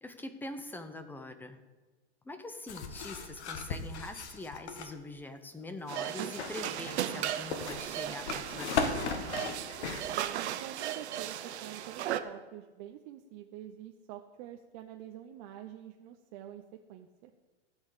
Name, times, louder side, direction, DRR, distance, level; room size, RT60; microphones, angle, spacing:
voice 1, 0.0-1.6 2.2-9.2, left 2 dB, 5° left, 8 dB, 0.7 m, -43 dB
sound 1, 2.7-4.9 6.2-10.0, left 5 dB, 75° left, 1.7 m, -36 dB
sound 2, 5.9-12.2, right 11 dB, 70° right, 1.0 m, -36 dB
voice 2, 10.1-16.6 16.9-17.3, right 11 dB, 40° right, 4 dB, 0.8 m, -47 dB
16.5 x 5.5 x 8.4 m, 1.2 s
hypercardioid pair, 140°, 35 cm